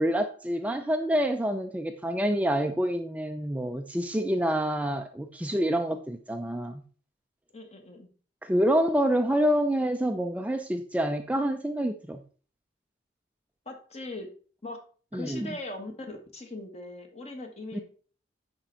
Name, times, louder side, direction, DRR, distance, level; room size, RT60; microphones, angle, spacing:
voice 1, 0.0-6.8 8.4-12.2 15.1-15.5 17.7-17.8, equal, 10° right, 6 dB, 0.4 m, -27 dB
voice 2, 7.5-8.1 13.6-14.3 14.6-14.8 15.1-17.8, left 2 dB, 35° left, 4 dB, 1.6 m, -40 dB
10.0 x 4.4 x 4.0 m, 0.41 s
head